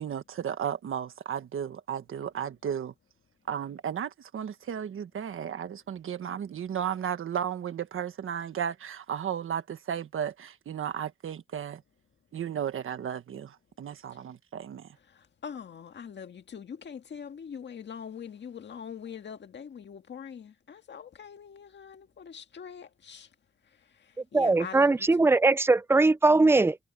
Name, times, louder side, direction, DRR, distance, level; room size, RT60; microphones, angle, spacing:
voice 1, 0.0-2.9 3.5-11.8 12.3-14.9, right 8 dB, 75° right, 1.4 m, -34 dB
voice 2, 15.1-23.3 23.9-25.1, left 7 dB, 60° left, 1.8 m, -43 dB
voice 3, 24.3-26.8, right 3 dB, 10° right, 0.4 m, -21 dB
wide cardioid pair, 155°, 21 cm